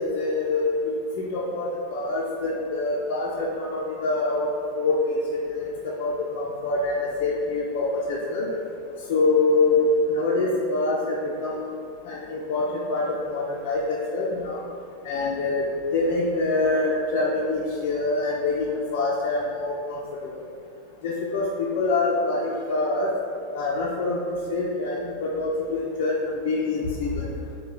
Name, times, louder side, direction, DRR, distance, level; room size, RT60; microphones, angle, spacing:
voice 1, 0.0-4.5 4.8-5.2 5.5-5.7 6.0-8.5 9.1-11.6 12.1-14.6 15.0-15.6 15.9-20.3 21.0-23.1 23.5-24.2 24.5-27.3, left 3 dB, 50° left, -5 dB, 0.5 m, -25 dB
6.6 x 2.3 x 3.3 m, 2.4 s
supercardioid pair, 175°, 0 cm